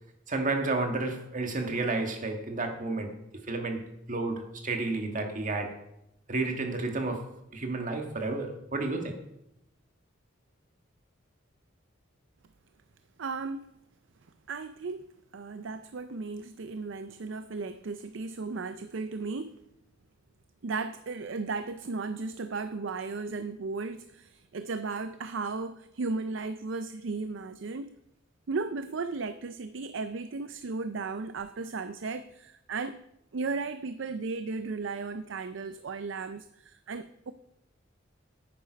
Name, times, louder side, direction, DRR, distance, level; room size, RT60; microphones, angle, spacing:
voice 1, 0.3-3.1 3.5-3.8 4.1-5.8 6.3-9.2, right 3 dB, 40° right, 4 dB, 1.6 m, -31 dB
voice 2, 13.2-13.7 14.5-19.6 20.6-28.0 28.5-33.1 33.3-37.3, right 4 dB, 65° right, 11 dB, 0.5 m, -35 dB
10.5 x 9.1 x 5.1 m, 0.83 s
head